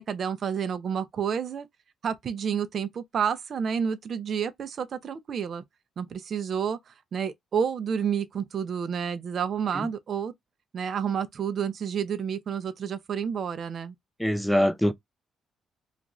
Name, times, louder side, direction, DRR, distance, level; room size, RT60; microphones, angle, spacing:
voice 1, 0.0-1.7 2.0-5.6 6.0-10.3 10.7-13.9, right 7 dB, 55° right, 0.5 m, -30 dB
voice 2, 14.2-14.9, equal, 5° left, 0.4 m, -23 dB
2.5 x 2.4 x 2.9 m
cardioid pair, 90°, 0 cm